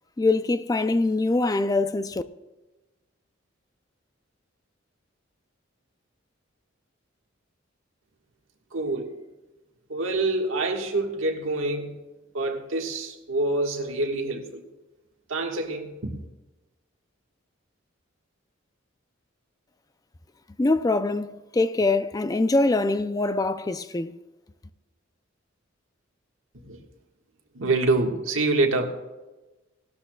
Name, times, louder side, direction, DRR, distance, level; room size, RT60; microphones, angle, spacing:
voice 1, 0.2-2.2 20.6-24.1, left 2 dB, 20° left, 0.4 m, -23 dB
voice 2, 8.7-9.2 9.9-12.0 12.3-14.6 15.3-16.2 26.6-26.8 27.5-29.0, right 2 dB, 85° right, 1.5 m, -26 dB
18.0 x 12.5 x 2.3 m
head